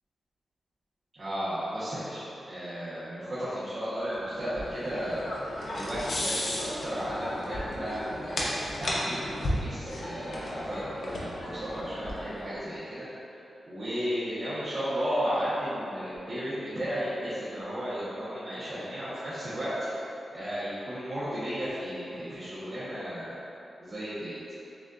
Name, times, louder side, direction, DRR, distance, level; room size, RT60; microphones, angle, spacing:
voice 1, 1.2-5.2 5.6-13.1 13.7-19.9 20.3-23.3 23.8-24.4, equal, 40° right, -13 dB, 1.1 m, -34 dB
sound 1, 4.1-12.6, left 1 dB, 65° left, 0.8 m, -35 dB
6.9 x 2.6 x 2.5 m, 2.8 s
wide cardioid pair, 105°, 0 cm